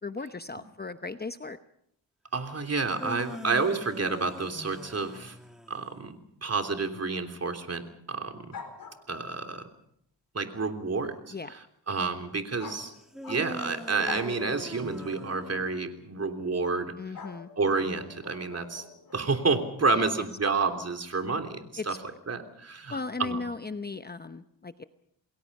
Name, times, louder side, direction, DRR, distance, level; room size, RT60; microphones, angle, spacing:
voice 1, 0.0-1.6 11.3-11.6 17.0-17.5 19.9-20.1 21.8-22.0 22.9-24.8, left 3 dB, 25° left, 10 dB, 0.9 m, -36 dB
voice 2, 2.3-5.4 5.7-8.6 9.1-9.7 10.3-11.3 11.9-12.9 13.3-16.9 17.6-18.8 19.1-21.9 22.3-23.5, right 4 dB, 35° right, 5 dB, 3.3 m, -29 dB
sound 1, 2.8-6.0 13.1-16.1, equal, ahead, 2.3 m, -42 dB
sound 2, 8.5-9.4 12.6-13.7 14.0-14.3 15.6-15.8 17.1-19.3, left 5 dB, 55° left, 4.1 m, -44 dB
28.5 x 21.0 x 5.5 m, 0.71 s
cardioid pair, 95°, 42 cm